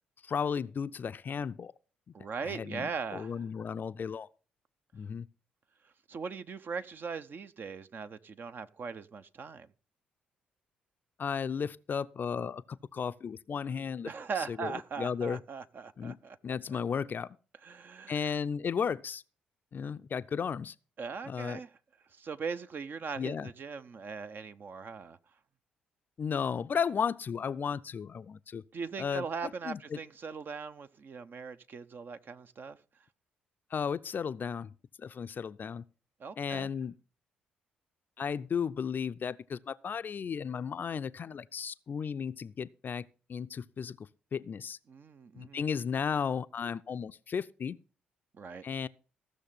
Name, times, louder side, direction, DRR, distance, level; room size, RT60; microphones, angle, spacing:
voice 1, 0.2-1.7 2.4-4.3 4.9-5.3 11.2-14.1 14.4-15.4 16.0-16.2 16.4-17.4 18.1-19.2 19.7-20.7 21.3-21.6 23.2-23.5 26.2-28.6 29.0-30.0 33.7-35.8 36.4-36.9 38.2-44.8 45.3-47.8 48.6-48.9, left 6 dB, 40° left, 0.5 m, -34 dB
voice 2, 2.1-3.4 6.1-9.7 14.0-16.4 17.6-18.2 21.0-21.7 22.1-25.2 28.7-32.8 36.2-36.7 44.9-45.6 48.3-48.7, right 5 dB, 45° right, 0.8 m, -40 dB
15.5 x 6.6 x 5.7 m
figure-of-eight pair, 45°, 5 cm